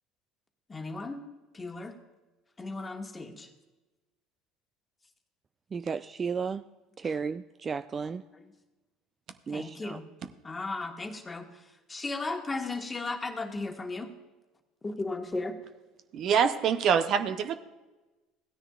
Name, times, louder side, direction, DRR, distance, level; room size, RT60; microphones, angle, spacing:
voice 1, 0.7-1.2 1.5-2.0 2.6-3.5 8.2-8.4 9.5-10.0 10.4-11.6 11.9-14.1 14.8-15.6, left 3 dB, 20° left, 1.5 m, -35 dB
voice 2, 5.7-6.6 7.0-8.2 9.5-10.0, right 5 dB, 35° right, 0.3 m, -33 dB
voice 3, 16.1-17.5, right 7 dB, 55° right, 0.7 m, -25 dB
16.0 x 9.8 x 2.4 m
hypercardioid pair, 75°, 0 cm